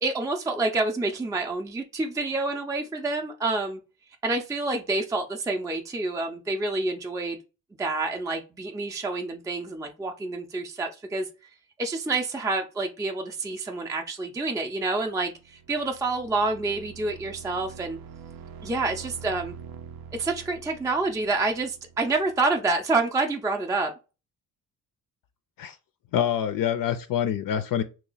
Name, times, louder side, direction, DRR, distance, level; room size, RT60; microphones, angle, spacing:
voice 1, 0.0-3.8 4.2-7.4 7.8-11.3 11.8-18.0 18.6-19.5 20.1-23.9, right 3 dB, 10° right, 0.4 m, -28 dB
sound 1, 15.1-22.8, right 7 dB, 70° right, 0.5 m, -45 dB
voice 2, 26.1-27.8, left 9 dB, 65° left, 0.5 m, -26 dB
2.9 x 2.3 x 3.8 m
cardioid pair, 95°, 37 cm